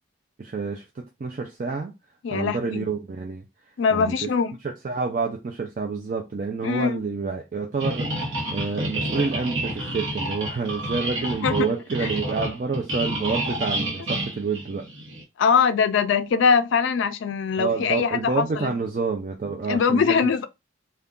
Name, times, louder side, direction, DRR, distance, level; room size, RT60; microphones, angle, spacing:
voice 1, 0.4-1.9 2.3-3.5 3.9-4.3 4.8-14.9 17.6-20.3, right 4 dB, 40° right, 0.3 m, -28 dB
voice 2, 2.2-2.9 3.8-4.6 6.6-7.0 11.4-11.7 12.0-12.1 15.4-18.7 19.7-20.5, left 6 dB, 65° left, 0.3 m, -22 dB
sound 1, 7.8-15.2, right 1 dB, 65° right, 0.9 m, -29 dB
2.4 x 2.2 x 3.5 m
head